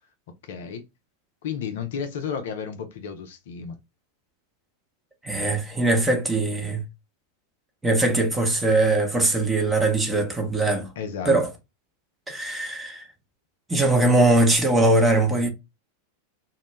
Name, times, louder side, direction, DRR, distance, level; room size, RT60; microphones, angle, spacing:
voice 1, 0.4-0.9 1.4-3.8 11.0-11.4, left 6 dB, 55° left, 0.4 m, -32 dB
voice 2, 5.2-6.8 7.8-10.9 11.3-11.5 12.3-13.1 13.7-15.5, right 2 dB, 10° right, 0.6 m, -21 dB
2.1 x 2.0 x 3.0 m
figure-of-eight pair, 90°, 0 cm